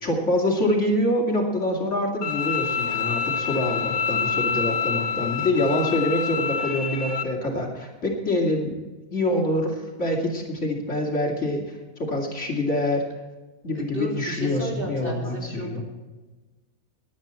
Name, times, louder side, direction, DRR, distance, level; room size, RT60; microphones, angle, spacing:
voice 1, 0.0-8.8 9.1-13.1 13.6-15.8, left 1 dB, 55° left, -1 dB, 3.0 m, -25 dB
Bowed string instrument, 2.2-7.2, left 6 dB, 75° left, 1.5 m, -27 dB
voice 2, 13.7-15.8, equal, 40° right, -2 dB, 3.7 m, -33 dB
17.5 x 11.0 x 4.4 m, 1.2 s
omnidirectional pair, 1.5 m